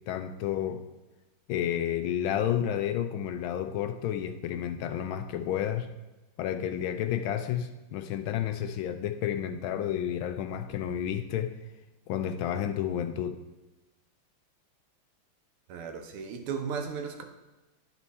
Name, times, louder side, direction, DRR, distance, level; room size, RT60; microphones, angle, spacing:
voice 1, 0.1-0.8 1.5-5.9 6.4-11.5 12.1-13.4, left 10 dB, 75° left, 8 dB, 1.3 m, -31 dB
voice 2, 15.7-17.2, right 6 dB, 85° right, 5 dB, 1.8 m, -35 dB
11.0 x 4.4 x 4.1 m, 1.1 s
omnidirectional pair, 2.4 m